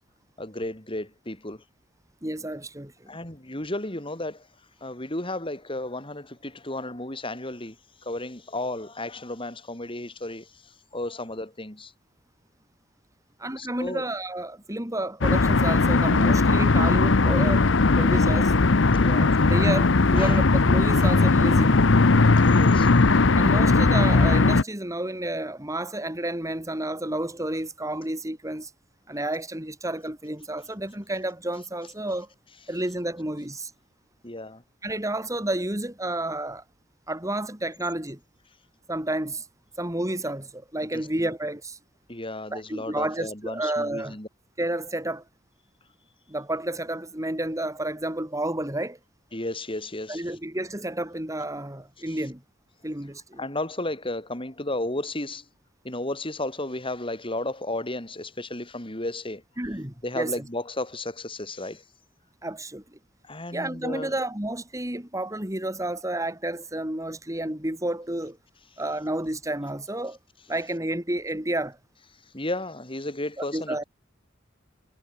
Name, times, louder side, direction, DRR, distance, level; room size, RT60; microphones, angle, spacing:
voice 1, 0.4-1.6 3.1-4.5 4.8-7.8 8.0-11.9 13.6-14.0 18.9-19.3 20.1-20.4 21.0-21.2 22.5-22.9 34.2-34.6 40.9-41.3 42.1-44.3 49.3-50.3 52.1-52.2 53.4-55.4 55.8-59.4 60.0-61.8 63.2-64.2 72.3-73.8, left 2 dB, 25° left, 4.7 m, -33 dB
voice 2, 2.2-3.1 13.4-17.7 18.0-18.5 19.2-21.8 23.3-28.7 29.1-32.3 32.7-33.7 34.8-36.6 37.1-38.2 38.9-39.4 39.8-41.8 42.5-44.2 44.6-45.2 46.3-49.0 50.1-52.4 52.8-53.5 59.6-60.3 62.4-62.8 63.5-68.4 68.8-70.2 70.5-71.8 73.4-73.8, right 1 dB, 15° right, 3.2 m, -30 dB
sound 1, 15.2-24.6, left 3 dB, 65° left, 0.9 m, -19 dB
head